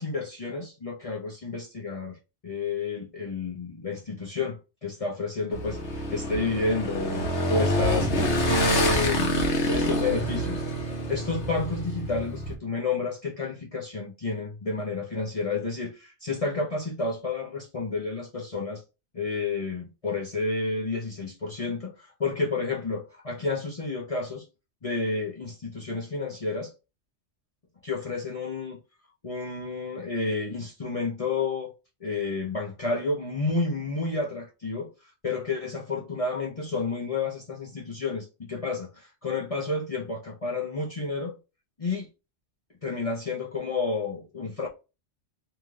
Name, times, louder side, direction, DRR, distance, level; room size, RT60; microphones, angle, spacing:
voice 1, 0.0-2.2 2.4-8.1 8.5-18.8 19.1-24.4 24.8-26.7 27.8-28.8 29.2-31.7 32.0-34.9 35.2-41.4 41.8-42.1 42.8-44.7, left 3 dB, 35° left, 0.8 m, -30 dB
Motorcycle / Engine, 5.5-12.5, left 1 dB, 70° left, 1.2 m, -27 dB
3.3 x 2.9 x 3.7 m
omnidirectional pair, 1.2 m